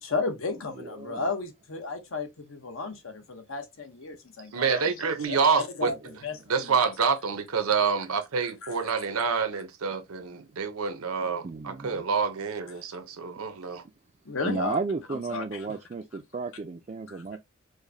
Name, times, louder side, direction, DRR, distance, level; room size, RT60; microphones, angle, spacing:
voice 1, 0.0-6.7 8.6-8.8 12.7-12.8 14.2-14.8 15.1-15.8 17.1-17.4, left 4 dB, 70° left, 0.8 m, -34 dB
voice 2, 0.8-1.2 5.9-6.1 11.4-12.0 14.4-17.4, right 4 dB, 30° right, 0.3 m, -34 dB
voice 3, 4.5-5.9 6.5-13.8, right 5 dB, 90° right, 0.7 m, -27 dB
4.8 x 2.1 x 2.7 m
head